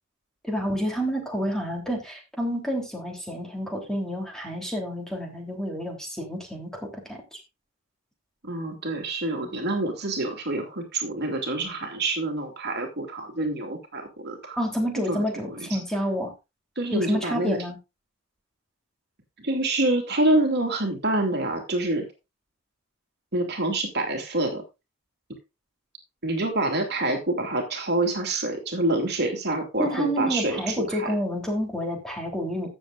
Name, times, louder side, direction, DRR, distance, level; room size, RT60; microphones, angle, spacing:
voice 1, 0.4-7.4 14.6-16.3 16.9-17.8 29.8-32.7, equal, 5° left, 0 dB, 3.3 m, -29 dB
voice 2, 8.4-14.6 15.1-15.7 16.8-17.6 19.4-22.1 23.3-24.6 26.2-31.2, right 2 dB, 55° right, 4 dB, 2.7 m, -27 dB
16.0 x 7.4 x 2.5 m, 0.25 s
head